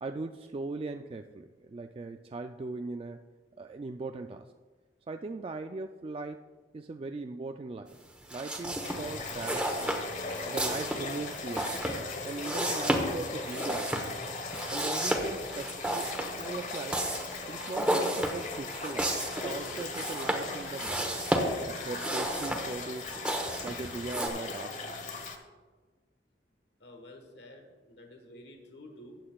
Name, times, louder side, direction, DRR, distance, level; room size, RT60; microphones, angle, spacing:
voice 1, 0.0-3.2 3.6-4.5 5.1-6.4 6.7-8.0 8.3-9.9 10.5-11.8 12.2-14.1 14.7-17.0 17.5-21.1 21.7-23.2 23.6-24.9, right 3 dB, 30° right, 6 dB, 0.3 m, -39 dB
sound 1, 8.2-24.3, right 1 dB, 5° right, 1.1 m, -33 dB
sound 2, 8.8-25.4, left 3 dB, 45° left, 1.1 m, -39 dB
voice 2, 26.8-29.2, left 1 dB, 75° left, 3 dB, 1.4 m, -50 dB
15.0 x 9.3 x 2.3 m, 1.4 s
head